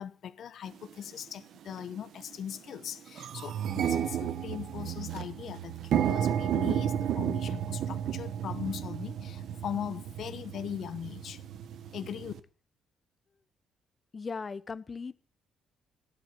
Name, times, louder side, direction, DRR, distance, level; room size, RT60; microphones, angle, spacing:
voice 1, 0.0-11.4 11.9-12.3, left 9 dB, 55° left, 1.2 m, -39 dB
sound 1, 0.8-0.9 1.7-1.9 2.3-2.4 2.7-12.4, right 9 dB, 65° right, 1.3 m, -32 dB
voice 2, 14.1-15.2, left 4 dB, 25° left, 0.9 m, -38 dB
17.0 x 8.5 x 6.9 m
cardioid pair, 145°, 0 cm